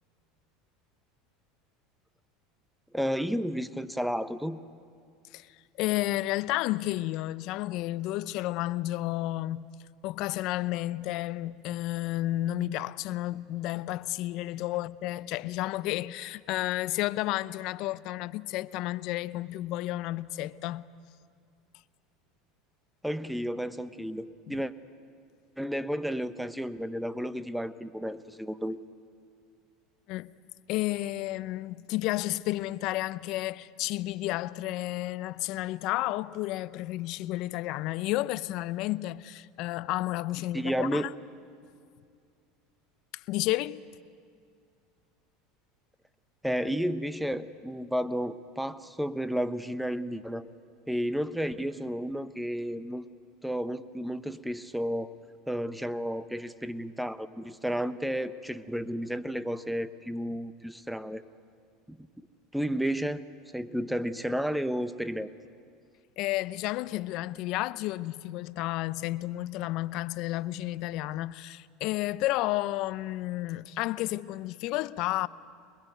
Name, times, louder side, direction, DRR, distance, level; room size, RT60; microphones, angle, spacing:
voice 1, 2.9-4.6 23.0-24.7 25.6-28.8 40.5-41.1 46.4-50.5 50.9-53.0 53.4-55.1 55.5-61.2 61.9-62.1 62.5-63.3 63.5-65.3, equal, 5° right, 1.0 m, -32 dB
voice 2, 5.8-9.7 10.0-20.8 24.5-24.6 30.1-30.3 30.7-41.1 43.1-43.8 66.2-75.3, left 16 dB, 60° left, 0.6 m, -31 dB
25.5 x 21.0 x 9.2 m
hypercardioid pair, 90°, 0 cm